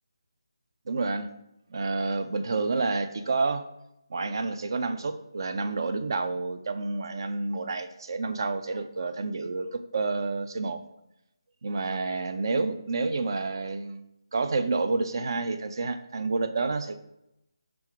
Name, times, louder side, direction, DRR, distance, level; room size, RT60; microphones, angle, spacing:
voice 1, 0.9-1.3 1.7-3.6 4.1-10.8 11.6-14.1 14.3-17.0, right 3 dB, 55° right, 9 dB, 0.4 m, -29 dB
5.0 x 3.5 x 3.0 m, 0.84 s
figure-of-eight pair, 160°, 3 cm